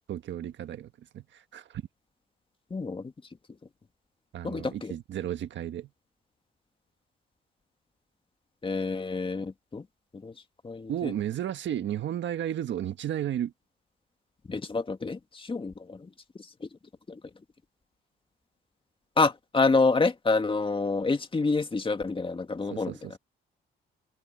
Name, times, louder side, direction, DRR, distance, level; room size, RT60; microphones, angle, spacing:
voice 1, 0.1-1.8 4.3-5.9 10.9-13.5 22.7-23.2, right 11 dB, 70° right, 1.5 m, -33 dB
voice 2, 2.7-3.1 4.4-4.9 8.6-9.8 10.2-10.3 10.6-11.1 14.5-16.1 16.6-16.7 17.1-17.2 19.2-22.9, left 3 dB, 25° left, 2.0 m, -27 dB
open air
cardioid pair, 90°, 20 cm